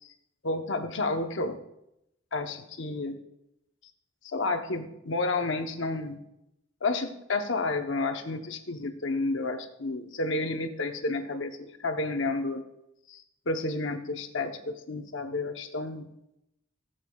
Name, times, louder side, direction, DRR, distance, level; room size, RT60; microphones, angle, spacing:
voice 1, 0.4-1.6 2.3-3.2 4.2-6.2 6.8-12.6 13.1-16.1, left 2 dB, 65° left, 6 dB, 0.9 m, -31 dB
15.5 x 7.9 x 2.3 m, 0.82 s
head